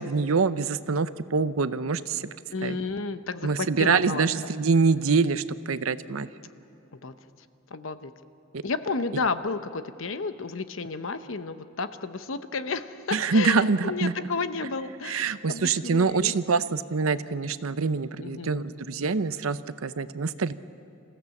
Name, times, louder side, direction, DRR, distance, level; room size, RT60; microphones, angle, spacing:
voice 1, 0.0-2.3 2.6-2.8 3.4-6.3 13.1-14.1 15.0-20.5, right 4 dB, 80° right, 14 dB, 0.7 m, -25 dB
voice 2, 2.5-4.5 6.9-7.1 7.7-8.1 8.6-16.3 18.2-18.7, left 4 dB, 65° left, 11 dB, 0.9 m, -32 dB
27.5 x 15.5 x 7.2 m, 2.9 s
head